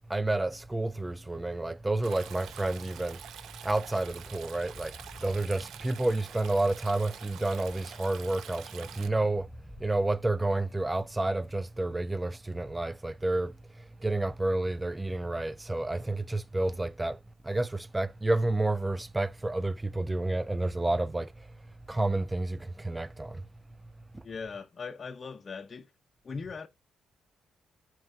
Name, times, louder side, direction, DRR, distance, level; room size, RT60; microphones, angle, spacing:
voice 1, 0.1-4.9 5.2-9.5 9.8-21.5 21.9-23.5 24.1-24.2, right 2 dB, 15° right, 0.5 m, -30 dB
Stream, 2.0-9.1, right 9 dB, 75° right, 0.7 m, -47 dB
sound 1, 3.2-9.9, left 1 dB, 5° left, 1.2 m, -54 dB
voice 2, 24.2-25.9 26.2-26.7, left 5 dB, 40° left, 0.8 m, -39 dB
7.4 x 4.7 x 2.7 m
cardioid pair, 90°, 0 cm